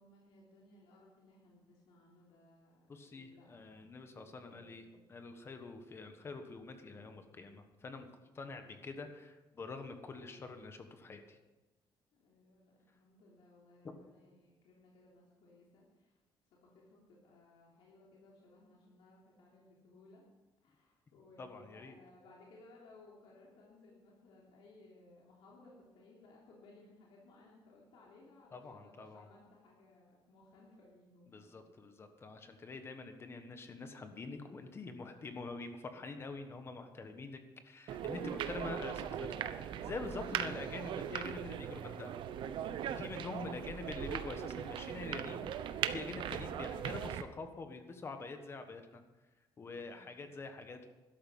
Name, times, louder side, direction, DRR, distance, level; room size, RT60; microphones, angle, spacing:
voice 1, 0.0-5.1 8.4-8.9 12.2-16.2 16.6-20.2 20.6-31.6 32.5-32.6 39.9-40.6 43.4-43.9 49.6-50.3, left 2 dB, 90° left, -4 dB, 3.3 m, -61 dB
voice 2, 2.9-8.1 8.3-11.4 21.4-21.9 28.5-29.3 31.3-42.1 43.0-49.0 49.6-50.9, left 3 dB, 30° left, 7 dB, 1.4 m, -46 dB
sound 1, 37.9-47.2, right 9 dB, 70° right, 0.8 m, -39 dB
12.5 x 12.5 x 5.6 m, 1.1 s
cardioid pair, 160°, 9 cm